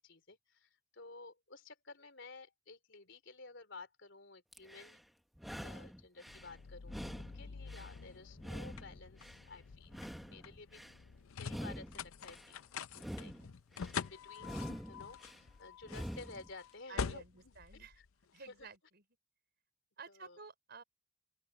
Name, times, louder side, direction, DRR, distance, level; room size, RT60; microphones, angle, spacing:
voice 1, 0.0-5.0 5.6-10.0 10.3-10.8 11.4-12.6 12.9-13.3 13.9-14.6 14.9-18.1 18.5-18.7 20.1-20.4, left 3 dB, 60° left, 3.8 m, -54 dB
sound 1, 4.5-5.0 5.4-6.5 6.9-8.0 8.4-9.5 9.9-11.0 11.4-12.5 12.9-14.0 14.4-15.4 15.8-16.5, equal, ahead, 1.1 m, -46 dB
sound 2, 6.3-18.6, left 6 dB, 90° left, 0.6 m, -46 dB
voice 2, 16.9-18.0 18.3-19.0 20.0-20.8, right 4 dB, 50° right, 4.9 m, -52 dB
open air
head